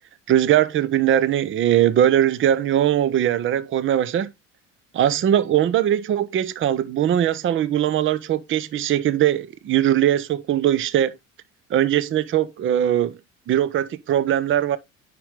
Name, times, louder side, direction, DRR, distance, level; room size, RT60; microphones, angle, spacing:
voice 1, 0.3-4.3 4.9-11.1 11.7-13.2 13.5-14.8, right 11 dB, 30° right, 0.6 m, -20 dB
8.8 x 5.2 x 3.2 m
hypercardioid pair, 65°, 39 cm